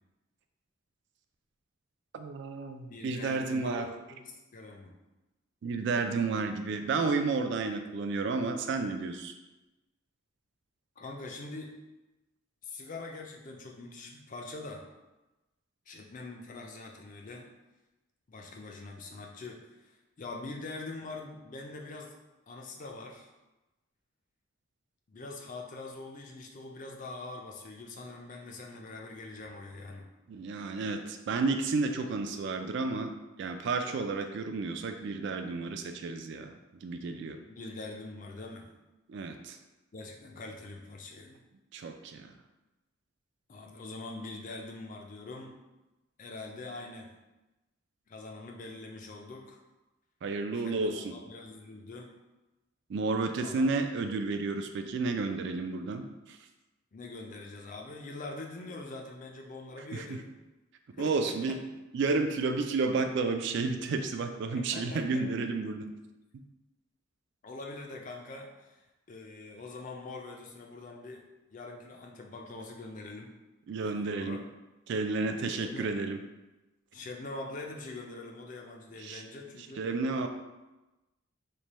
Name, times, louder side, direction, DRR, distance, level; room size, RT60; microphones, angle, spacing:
voice 1, 2.1-3.9 5.6-9.3 30.3-33.1 33.4-37.4 39.1-39.6 41.7-42.3 50.2-51.1 52.9-56.4 59.9-60.2 61.0-61.6 61.9-65.9 66.3-66.4 73.7-74.4 74.9-76.2 79.0-79.2 79.8-80.3, right 3 dB, 55° right, 7 dB, 0.3 m, -31 dB
voice 2, 2.9-4.9 11.0-11.8 12.6-14.8 15.9-17.4 18.3-22.1 22.5-23.3 25.1-30.1 37.5-38.7 39.9-41.4 43.5-45.6 46.2-47.1 48.1-49.6 50.5-52.1 53.4-53.7 54.0-54.2 56.9-60.3 61.0-61.6 64.5-65.2 67.4-71.2 71.5-73.3 73.8-74.4 75.5-75.9 76.9-79.9, left 2 dB, 40° left, 1 dB, 0.4 m, -44 dB
3.2 x 2.2 x 4.1 m, 1.1 s
head